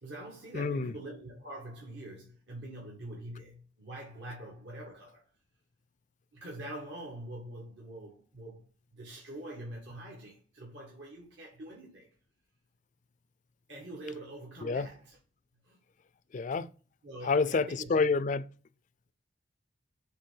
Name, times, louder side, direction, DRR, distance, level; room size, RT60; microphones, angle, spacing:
voice 1, 0.0-5.2 6.3-8.6 8.9-12.1 13.7-15.2 15.6-15.8 17.0-17.9, right 1 dB, 70° right, 1.8 m, -44 dB
voice 2, 0.5-0.9 14.6-14.9 16.3-16.7 17.2-18.5, left 4 dB, 40° left, 0.4 m, -28 dB
6.6 x 3.4 x 5.6 m
head